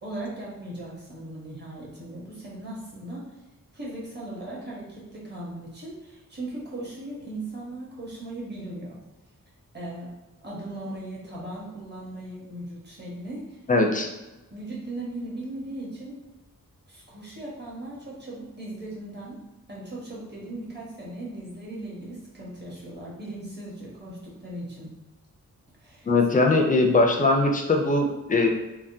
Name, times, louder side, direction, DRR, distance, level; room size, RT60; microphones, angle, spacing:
voice 1, 0.0-3.3 3.7-9.0 9.7-10.1 10.4-13.6 14.5-16.2 16.9-19.4 19.7-24.9 25.8-26.1 26.5-26.6, right 1 dB, 30° right, -6 dB, 1.0 m, -38 dB
voice 2, 13.7-14.1 26.0-28.5, left 2 dB, 25° left, 3 dB, 0.4 m, -21 dB
3.5 x 2.1 x 2.6 m, 1.1 s
wide cardioid pair, 110°, 33 cm